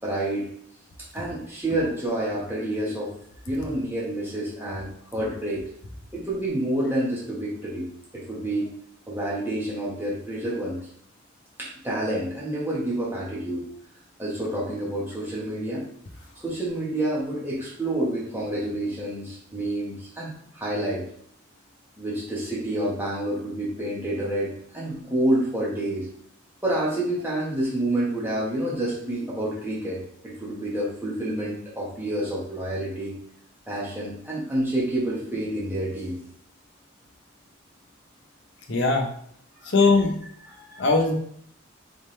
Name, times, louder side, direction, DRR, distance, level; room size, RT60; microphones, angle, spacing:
voice 1, 0.0-0.5 1.1-3.1 3.5-5.7 6.1-8.7 9.1-10.8 11.6-13.7 14.2-15.9 16.4-21.0 22.0-26.1 26.6-33.2 33.7-36.2 39.6-39.7 40.5-40.9, right 1 dB, 10° right, -6 dB, 1.2 m, -28 dB
voice 2, 38.7-39.1 39.7-40.1 40.8-41.1, left 3 dB, 60° left, 3 dB, 0.8 m, -20 dB
4.2 x 3.6 x 3.2 m, 0.64 s
head